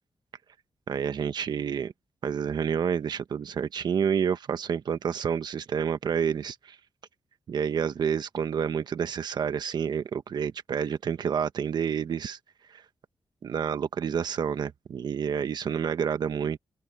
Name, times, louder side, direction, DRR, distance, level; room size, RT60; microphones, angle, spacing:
voice 1, 0.9-1.9 2.2-6.8 7.5-12.4 12.7-12.8 13.4-16.6, right 7 dB, 70° right, 1.3 m, -29 dB
open air
cardioid pair, 80°, 8 cm